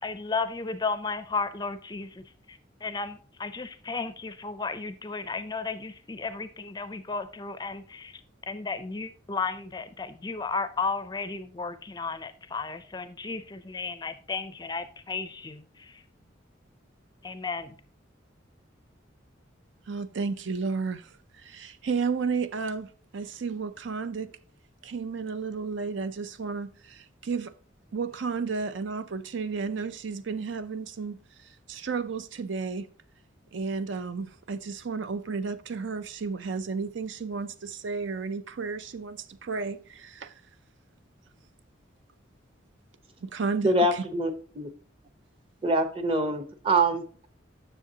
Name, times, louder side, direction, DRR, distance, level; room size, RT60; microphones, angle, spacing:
voice 1, 0.0-8.2 8.5-16.0 17.2-17.8, left 4 dB, 20° left, 0.4 m, -34 dB
voice 2, 19.9-24.3 24.8-27.5 27.9-32.9 33.5-40.3 43.2-44.0, right 5 dB, 70° right, 0.5 m, -33 dB
voice 3, 43.6-44.7 45.6-47.3, right 2 dB, 30° right, 0.8 m, -25 dB
10.0 x 6.6 x 2.8 m
head